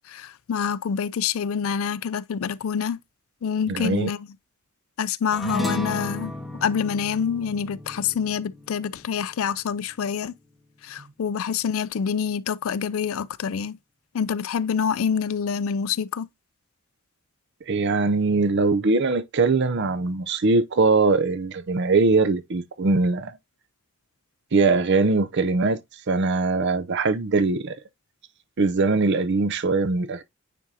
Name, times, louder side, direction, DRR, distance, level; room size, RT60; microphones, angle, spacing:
voice 1, 0.1-3.0 3.4-4.3 5.0-6.3 6.6-10.3 10.8-13.8 14.1-16.3, left 7 dB, 75° left, 0.4 m, -26 dB
voice 2, 3.7-4.1 17.7-23.4 24.5-25.8 26.1-27.8 28.6-30.2, right 3 dB, 55° right, 0.6 m, -21 dB
sound 1, 5.3-10.0, left 1 dB, ahead, 0.7 m, -34 dB
9.2 x 3.8 x 2.7 m
head